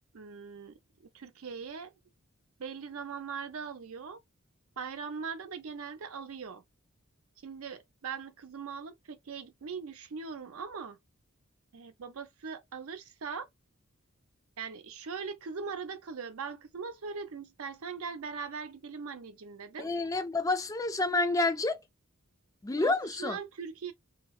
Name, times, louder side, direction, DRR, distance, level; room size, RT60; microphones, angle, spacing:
voice 1, 0.1-1.9 2.6-4.2 4.8-6.6 7.4-11.0 11.7-13.5 14.6-19.9 22.8-23.9, right 5 dB, 80° right, 0.6 m, -40 dB
voice 2, 19.8-21.8 22.6-23.4, left 2 dB, 15° left, 0.3 m, -29 dB
2.8 x 2.0 x 2.3 m
head